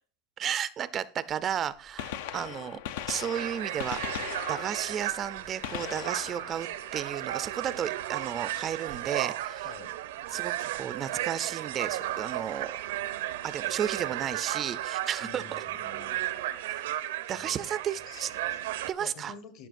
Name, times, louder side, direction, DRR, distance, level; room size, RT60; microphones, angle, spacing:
voice 1, 0.4-2.8 3.1-9.7 10.3-12.7 13.4-15.4 16.7-16.8 17.3-18.3 18.9-19.3, right 9 dB, 30° right, 15 dB, 0.4 m, -33 dB
Gunshot gunfire, 1.3-1.4 1.8-7.7 9.6-9.8 10.8-10.9 12.5-12.6 14.0-14.1 14.2-14.3, left 10 dB, 75° left, 0.6 m, -39 dB
sound 1, 3.3-18.9, right 14 dB, 85° right, 0.7 m, -34 dB
voice 2, 15.2-16.3 17.3-19.7, left 5 dB, 45° left, 12 dB, 1.2 m, -49 dB
14.0 x 5.7 x 2.5 m, 0.39 s
supercardioid pair, 150°, 0 cm